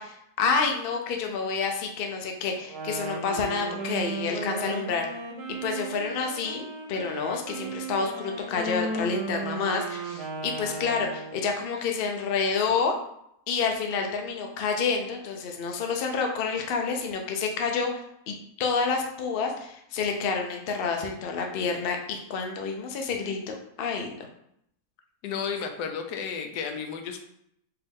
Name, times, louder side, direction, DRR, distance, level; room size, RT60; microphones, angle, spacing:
voice 1, 0.0-5.1 5.6-12.9 13.5-17.9 18.3-24.3, left 5 dB, 60° left, 3 dB, 0.6 m, -29 dB
Wind instrument woodwind instrument, 2.6-11.6, right 3 dB, 85° right, 1.4 m, -35 dB
voice 2, 25.2-27.2, left 6 dB, 85° left, 6 dB, 1.1 m, -32 dB
4.5 x 2.8 x 3.6 m, 0.74 s
omnidirectional pair, 1.6 m